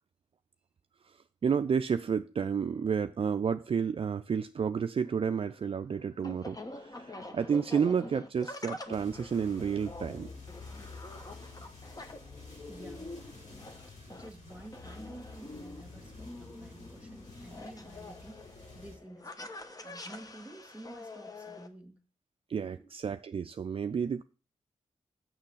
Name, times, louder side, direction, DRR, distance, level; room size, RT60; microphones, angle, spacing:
voice 1, 1.4-10.3 22.5-24.2, right 6 dB, 50° right, 0.4 m, -31 dB
sound 1, 5.0-21.7, left 2 dB, 30° left, 1.1 m, -46 dB
sound 2, 8.9-19.0, left 3 dB, 90° left, 3.9 m, -50 dB
voice 2, 12.7-13.1 14.0-19.5 19.8-22.0 22.8-22.9, right 1 dB, 10° right, 1.9 m, -51 dB
6.5 x 6.3 x 5.6 m
cardioid pair, 55°, 13 cm